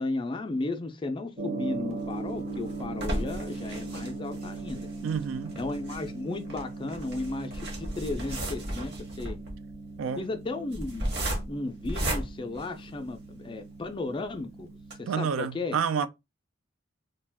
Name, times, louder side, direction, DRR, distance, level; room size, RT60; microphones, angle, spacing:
voice 1, 0.0-4.9 5.6-9.4 10.2-11.1 11.5-14.7 15.0-15.8, left 2 dB, 25° left, 0.4 m, -34 dB
Gong, 1.4-15.1, right 3 dB, 35° right, 0.7 m, -39 dB
sound 1, 2.0-13.4 13.9-14.0 14.3-14.4 14.8-14.9, right 1 dB, 55° right, 0.9 m, -35 dB
voice 2, 5.0-5.5 10.0-10.2 15.1-16.1, right 6 dB, 85° right, 0.3 m, -29 dB
2.4 x 2.2 x 3.3 m
head